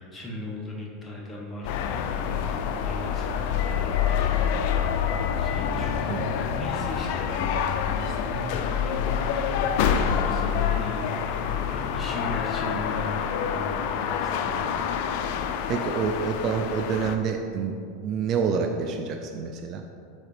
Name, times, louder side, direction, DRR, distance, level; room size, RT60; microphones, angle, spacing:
voice 1, 0.0-14.6, left 1 dB, 10° left, -4 dB, 1.1 m, -38 dB
sound 1, 1.6-17.2, left 8 dB, 60° left, 0.4 m, -27 dB
voice 2, 15.7-17.8 18.0-19.8, right 6 dB, 40° right, 4 dB, 0.4 m, -27 dB
4.9 x 4.0 x 4.9 m, 2.4 s
supercardioid pair, 140°, 0 cm